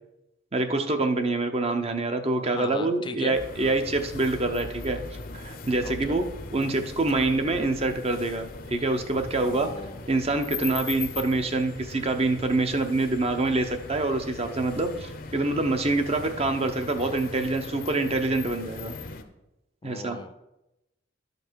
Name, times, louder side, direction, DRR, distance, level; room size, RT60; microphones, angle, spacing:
voice 1, 0.5-5.0 5.3-6.2 6.5-9.7 10.1-18.9 19.8-20.2, right 2 dB, 30° right, 7 dB, 0.7 m, -26 dB
voice 2, 2.4-3.7 5.8-6.2 9.5-10.0 19.8-20.3, left 4 dB, 25° left, 9 dB, 0.3 m, -38 dB
sound 1, 3.3-19.2, left 4 dB, 50° left, 0.8 m, -39 dB
12.0 x 5.3 x 4.6 m, 0.93 s
head